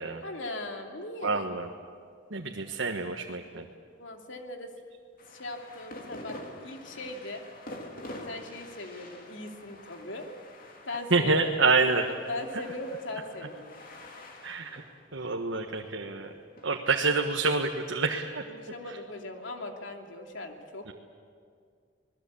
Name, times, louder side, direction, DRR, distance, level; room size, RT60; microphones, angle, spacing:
voice 1, 0.2-1.5 4.0-4.7 5.3-7.4 8.3-10.3 10.8-11.4 12.3-13.8 17.0-17.1 18.5-20.9, left 2 dB, 75° left, 3 dB, 2.7 m, -39 dB
voice 2, 1.2-1.7 2.3-3.6 11.1-12.1 14.4-14.8 15.1-16.3 16.6-18.4 20.9-21.0, right 3 dB, 80° right, 2 dB, 1.4 m, -27 dB
sound 1, 5.2-16.6, left 1 dB, 45° left, 2.9 m, -47 dB
27.0 x 20.0 x 8.6 m, 2.2 s
head